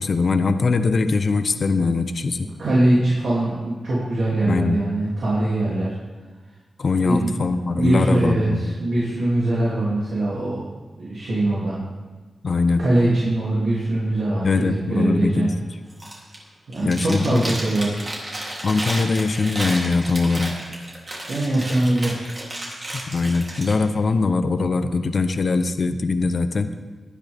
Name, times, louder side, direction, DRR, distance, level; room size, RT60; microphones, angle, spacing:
voice 1, 0.0-2.5 4.4-4.8 6.8-8.7 12.4-12.8 14.4-15.5 16.8-17.4 18.6-20.6 22.9-26.7, left 3 dB, 55° left, 9 dB, 0.8 m, -21 dB
voice 2, 2.4-5.9 7.0-7.3 7.7-10.6 11.0-11.8 12.8-15.5 16.7-18.1 21.3-22.3, right 1 dB, 80° right, -8 dB, 2.9 m, -22 dB
Chewing mastication, 15.9-16.4 16.7-23.7, right 1 dB, 35° right, 3.2 m, -32 dB
18.0 x 12.0 x 3.6 m, 1.3 s
wide cardioid pair, 95°, 0 cm